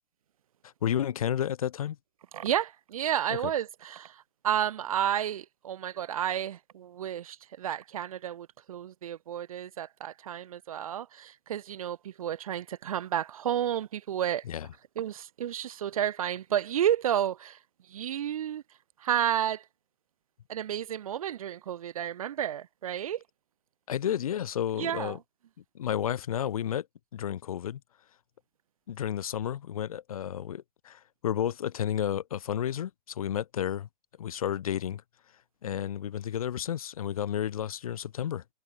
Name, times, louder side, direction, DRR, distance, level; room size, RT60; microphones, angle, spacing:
voice 1, 0.8-2.0 3.3-3.4 14.5-14.7 23.9-25.2 25.7-26.9 27.1-27.8 28.9-33.9 34.2-35.0 35.6-38.4, left 10 dB, 55° left, 3.7 m, -31 dB
voice 2, 2.3-14.4 15.0-17.6 17.9-18.6 19.0-19.6 20.5-23.2 24.8-25.2, right 10 dB, 55° right, 1.0 m, -31 dB
hypercardioid pair, 180°, 21 cm